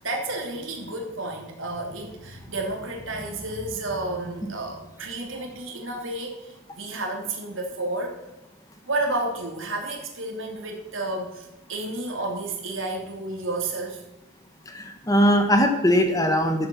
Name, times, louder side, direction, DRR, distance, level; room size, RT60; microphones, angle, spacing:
voice 1, 0.0-8.2 8.8-14.0, right 2 dB, 75° right, 1 dB, 3.2 m, -31 dB
voice 2, 14.7-16.7, equal, 15° left, 5 dB, 1.2 m, -20 dB
12.5 x 7.7 x 7.2 m, 0.96 s
head